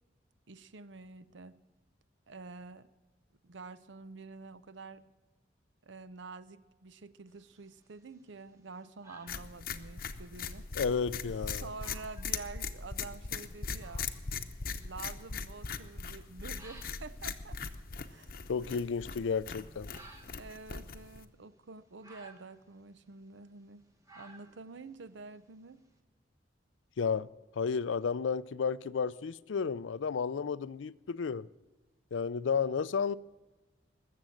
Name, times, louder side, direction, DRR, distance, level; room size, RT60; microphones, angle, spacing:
voice 1, 0.5-1.5 2.3-2.9 3.4-5.0 5.8-10.7 11.5-14.1 14.8-17.6 18.1-18.3 18.6-18.8 20.0-20.1 20.4-23.8 24.1-25.8, right 4 dB, 80° right, 0.7 m, -48 dB
sound 1, 7.3-26.0, right 2 dB, 15° right, 1.2 m, -61 dB
sound 2, 9.3-21.2, left 5 dB, 50° left, 0.8 m, -40 dB
voice 2, 10.8-11.7 18.5-19.9 27.0-27.3 27.6-31.5 32.1-33.1, left 6 dB, 90° left, 0.4 m, -32 dB
20.0 x 7.6 x 7.7 m
head